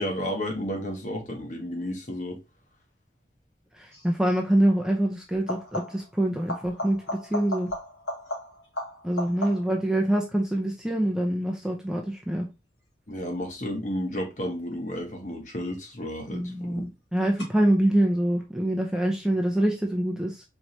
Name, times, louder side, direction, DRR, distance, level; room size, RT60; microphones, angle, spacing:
voice 1, 0.0-2.4 13.1-16.8, equal, 40° left, 1.0 m, -32 dB
voice 2, 3.8-7.0 7.3-7.7 9.0-12.5 16.3-20.4, right 1 dB, 5° right, 0.5 m, -25 dB
sound 1, 3.9-4.2 5.3-6.1 6.5-9.9 15.3-15.9 17.4-17.5, left 1 dB, 90° left, 2.2 m, -36 dB
4.5 x 3.1 x 2.6 m
head